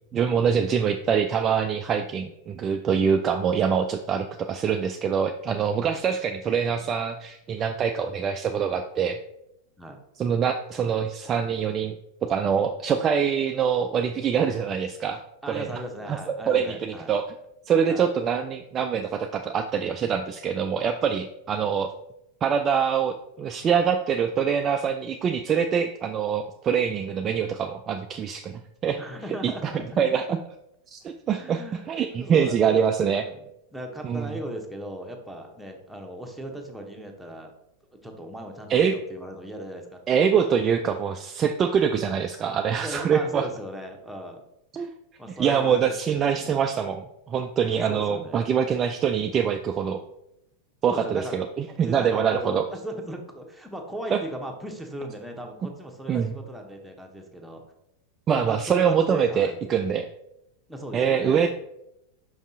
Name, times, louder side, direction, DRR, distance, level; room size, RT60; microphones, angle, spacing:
voice 1, 0.1-9.2 10.2-12.0 12.2-15.2 15.5-15.7 16.1-16.2 16.5-17.2 17.7-21.9 22.4-29.0 29.4-30.4 30.9-33.2 34.0-34.3 38.7-39.0 40.1-43.5 44.7-44.9 45.3-50.0 50.8-52.7 54.1-54.2 56.1-56.4 58.3-60.1 60.9-61.5, right 7 dB, 25° right, 6 dB, 0.3 m, -24 dB
voice 2, 15.4-17.1 17.9-18.1 29.0-30.0 31.3-32.8 33.3-37.5 37.9-40.2 42.8-44.4 45.2-46.6 47.7-48.7 50.9-57.6 58.3-60.0 60.7-61.5, equal, ahead, 1 dB, 1.0 m, -38 dB
5.5 x 5.3 x 3.6 m, 0.82 s
figure-of-eight pair, 90°, 0 cm